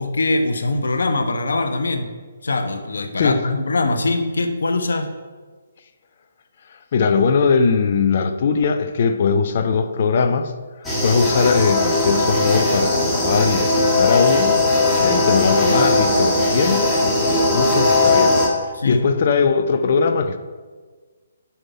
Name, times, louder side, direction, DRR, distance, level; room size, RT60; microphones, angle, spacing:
voice 1, 0.0-2.1 2.4-5.1 18.7-19.1, left 2 dB, 60° left, 6 dB, 1.0 m, -22 dB
voice 2, 6.7-10.5 11.0-14.5 15.0-18.3 18.6-20.4, left 5 dB, 45° left, 9 dB, 0.7 m, -20 dB
sound 1, 10.8-18.5, left 2 dB, 5° left, 1.7 m, -18 dB
9.8 x 5.8 x 4.8 m, 1.4 s
figure-of-eight pair, 135°, 0 cm